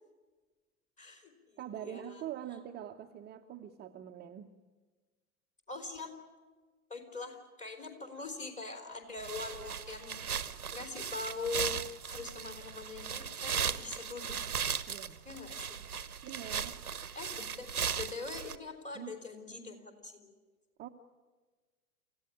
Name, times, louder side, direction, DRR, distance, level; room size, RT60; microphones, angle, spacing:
voice 1, 1.0-2.2 5.7-6.1 6.9-10.4 10.7-14.4 15.2-15.8 17.1-20.3, left 3 dB, 15° left, 5 dB, 3.7 m, -43 dB
voice 2, 1.6-4.5 14.9-15.3 16.2-16.8 18.9-19.1 20.8-20.9, right 10 dB, 20° right, 3 dB, 1.0 m, -44 dB
sound 1, 9.2-18.6, right 7 dB, 80° right, 1.0 m, -37 dB
28.0 x 15.5 x 9.9 m, 1.3 s
figure-of-eight pair, 90°, 44 cm